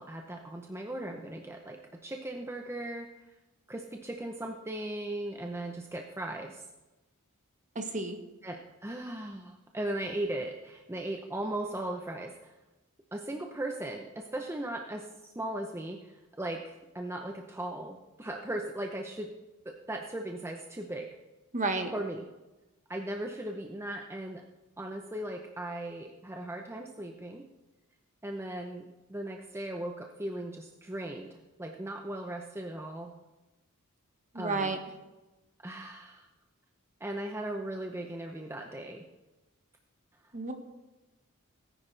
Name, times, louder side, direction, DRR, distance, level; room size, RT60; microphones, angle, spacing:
voice 1, 0.0-3.1 3.7-6.6 8.4-12.5 13.1-15.1 15.4-19.3 19.6-21.1 21.9-22.2 22.9-24.4 24.8-27.4 28.2-33.1 34.3-34.8 35.6-36.3 37.0-39.0, right 1 dB, 10° right, 2 dB, 0.7 m, -38 dB
voice 2, 7.7-8.2 21.5-21.9 34.3-34.8 40.3-40.5, right 3 dB, 35° right, 5 dB, 1.3 m, -31 dB
18.0 x 9.9 x 3.3 m, 1.1 s
head